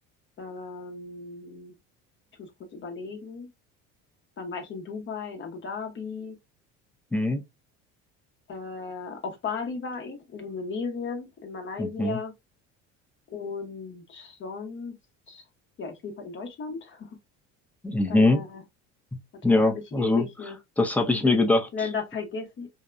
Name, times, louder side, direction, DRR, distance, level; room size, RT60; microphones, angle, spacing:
voice 1, 0.4-1.7 2.4-3.5 4.4-6.4 8.5-12.3 13.3-15.0 15.3-15.4 15.8-17.2 18.1-18.6 19.4-20.6 21.7-22.7, left 5 dB, 35° left, 0.8 m, -36 dB
voice 2, 7.1-7.4 11.8-12.2 17.8-18.4 19.4-20.2 20.8-21.7, left 2 dB, 5° left, 0.5 m, -22 dB
2.7 x 2.2 x 2.4 m
supercardioid pair, 105°, 32 cm